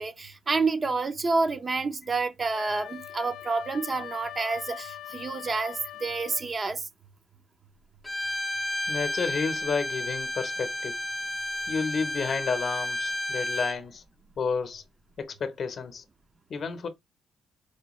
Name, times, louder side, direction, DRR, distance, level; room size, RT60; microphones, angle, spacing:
voice 1, 0.0-6.9, right 3 dB, 35° right, 0.5 m, -29 dB
Wind instrument woodwind instrument, 2.5-6.5, left 11 dB, 75° left, 0.4 m, -42 dB
Bowed string instrument, 8.0-13.8, left 1 dB, 10° left, 0.6 m, -32 dB
voice 2, 8.9-11.0 11.7-14.0 14.4-14.8 15.2-16.0 16.5-16.9, left 5 dB, 50° left, 0.8 m, -31 dB
4.4 x 2.2 x 3.0 m
cardioid pair, 90°, 0 cm